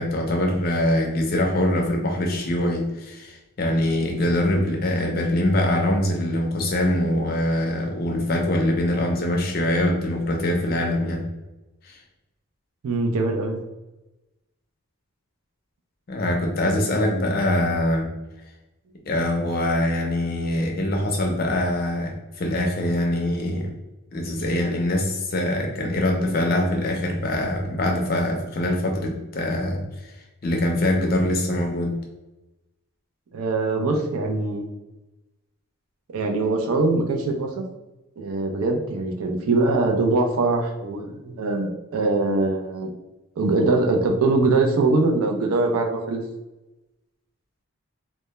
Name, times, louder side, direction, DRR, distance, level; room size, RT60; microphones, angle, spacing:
voice 1, 0.0-11.3 11.8-12.0 16.1-18.1 19.1-23.7 24.1-30.1 30.4-31.9, left 1 dB, 40° left, 2 dB, 0.4 m, -23 dB
voice 2, 12.8-13.6 33.3-34.7 36.1-37.6 38.2-42.9 43.4-46.2, right 3 dB, 70° right, 2 dB, 0.4 m, -22 dB
2.1 x 2.1 x 2.9 m, 1.0 s
head